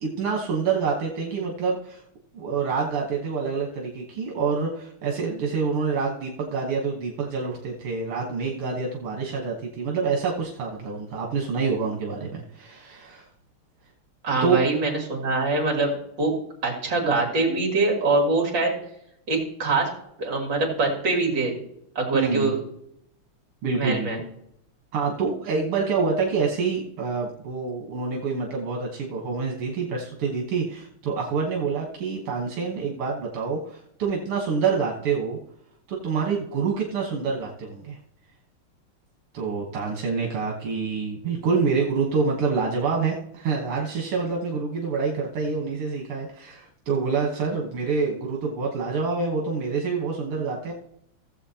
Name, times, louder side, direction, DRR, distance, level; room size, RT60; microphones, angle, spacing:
voice 1, 0.0-2.0 2.3-13.3 14.4-14.6 22.1-22.5 23.6-24.1 24.9-35.4 35.9-38.0 39.3-50.7, right 5 dB, 85° right, -1 dB, 2.2 m, -27 dB
voice 2, 14.2-16.3 16.6-18.7 19.3-19.9 20.2-21.6 22.0-22.5 23.8-24.2, right 3 dB, 60° right, -1 dB, 3.5 m, -23 dB
16.5 x 7.6 x 2.8 m, 0.74 s
omnidirectional pair, 2.4 m